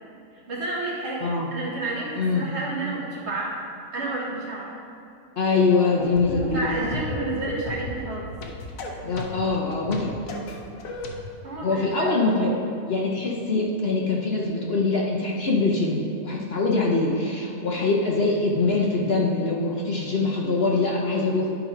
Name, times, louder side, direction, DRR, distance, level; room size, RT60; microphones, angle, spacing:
voice 1, 0.3-3.6 3.9-4.7 6.5-8.4 11.4-12.2 12.5-12.6, right 2 dB, 50° right, -5 dB, 1.6 m, -31 dB
voice 2, 2.2-2.5 5.4-6.7 9.0-10.1 11.6-12.5 12.9-21.5, left 3 dB, 50° left, -2 dB, 0.9 m, -23 dB
sound 1, 6.0-11.2, left 2 dB, 75° left, 1.3 m, -34 dB
11.0 x 3.9 x 5.0 m, 2.6 s
omnidirectional pair, 1.5 m